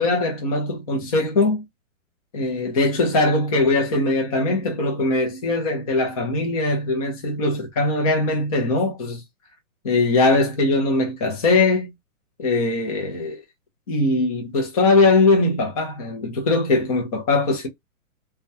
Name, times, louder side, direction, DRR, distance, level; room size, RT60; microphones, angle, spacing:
voice 1, 0.0-1.6 2.3-9.2 9.8-11.9 12.4-13.4 13.9-17.7, left 2 dB, 25° left, 0.6 m, -21 dB
2.2 x 2.2 x 2.6 m
hypercardioid pair, 165°, 43 cm